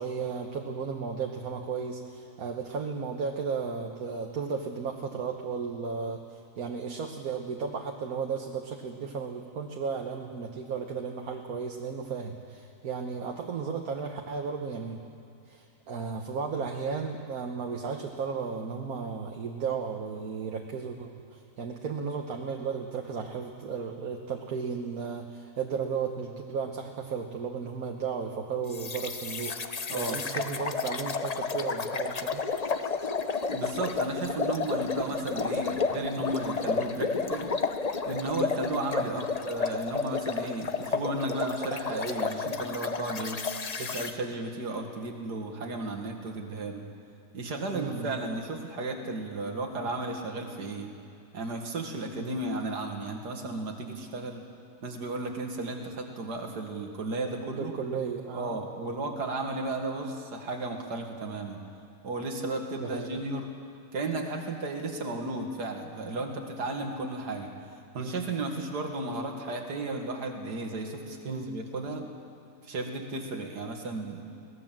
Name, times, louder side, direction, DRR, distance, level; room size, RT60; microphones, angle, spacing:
voice 1, 0.0-15.0 15.5-32.4 39.0-39.2 47.7-48.1 52.2-52.4 57.6-58.6 62.8-63.2 68.0-68.2 71.3-71.5, right 5 dB, 65° right, 2 dB, 1.6 m, -34 dB
sound 1, 28.7-44.1, left 4 dB, 35° left, 0.6 m, -31 dB
voice 2, 29.9-30.2 33.5-37.5 38.0-43.4 43.8-46.9 47.3-50.9 51.3-54.4 54.8-57.7 58.3-61.6 62.0-63.5 63.9-67.5 67.9-72.0 72.6-74.2, right 2 dB, 85° right, 3 dB, 2.5 m, -34 dB
22.5 x 17.5 x 7.5 m, 2.5 s
omnidirectional pair, 1.7 m